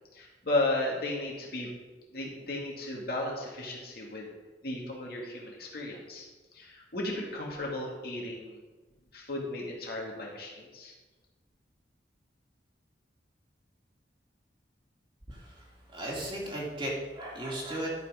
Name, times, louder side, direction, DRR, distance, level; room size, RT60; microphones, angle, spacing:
voice 1, 0.1-1.7 2.1-4.3 4.6-6.3 6.5-8.6 9.1-10.9, left 2 dB, 55° left, -2 dB, 2.3 m, -34 dB
voice 2, 15.3-15.6 15.9-17.9, right 1 dB, 30° right, -3 dB, 2.4 m, -35 dB
12.0 x 6.0 x 5.1 m, 1.3 s
head